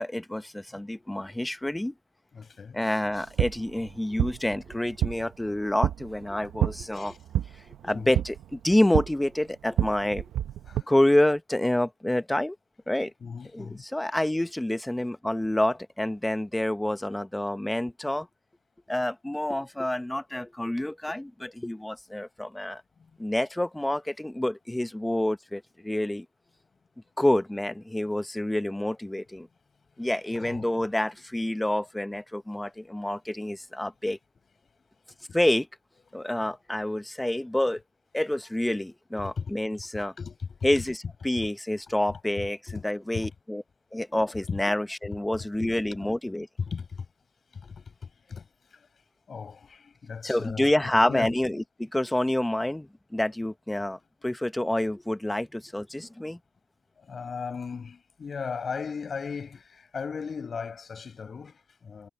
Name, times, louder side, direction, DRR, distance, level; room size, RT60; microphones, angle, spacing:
voice 1, 0.0-1.9 2.7-7.1 7.5-10.3 10.9-12.6 12.9-13.1 13.5-18.3 18.9-22.8 23.2-26.2 27.2-29.5 30.0-34.2 35.3-35.7 36.1-37.8 38.1-40.1 40.6-43.6 43.9-46.5 50.2-56.4, left 1 dB, 10° left, 1.1 m, -28 dB
voice 2, 2.3-2.8 6.9-7.2 7.9-8.1 10.7-10.9 13.2-13.8 30.3-30.7 39.2-39.6 39.9-40.7 42.7-42.8 43.1-43.3 44.5-44.6 45.6-45.8 46.0-46.1 46.7-47.1 47.5-48.9 49.3-50.7 51.0-51.3 57.0-62.1, left 5 dB, 50° left, 6.6 m, -37 dB
sound 1, 3.0-10.8, right 11 dB, 80° right, 0.8 m, -30 dB
cardioid pair, 75°, 0 cm